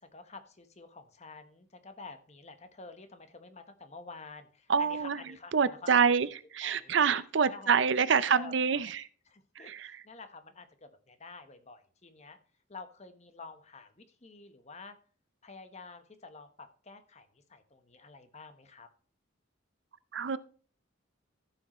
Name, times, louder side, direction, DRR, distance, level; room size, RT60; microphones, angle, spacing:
voice 1, 0.0-6.0 6.6-7.0 7.4-7.8 8.3-8.9 9.3-12.4 12.7-15.0 15.4-18.9, left 4 dB, 35° left, 9 dB, 1.1 m, -49 dB
voice 2, 4.7-5.2 5.5-6.3 6.5-9.1 9.6-10.0 20.1-20.4, right 6 dB, 60° right, 16 dB, 0.5 m, -26 dB
14.5 x 6.4 x 3.1 m, 0.41 s
head